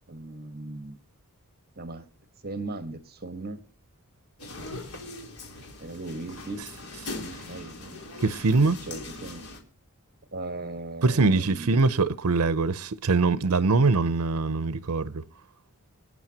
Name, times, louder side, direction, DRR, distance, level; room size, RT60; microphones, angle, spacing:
voice 1, 0.1-1.0 1.8-2.1 2.4-3.6 5.8-6.6 7.1-8.0 8.8-9.5 10.3-11.9, right 2 dB, 45° right, 1.6 m, -38 dB
sound 1, 4.4-9.6, left 2 dB, 85° left, 3.5 m, -40 dB
voice 2, 8.2-8.8 11.0-15.2, right 3 dB, 80° right, 0.7 m, -23 dB
26.0 x 9.5 x 2.9 m
head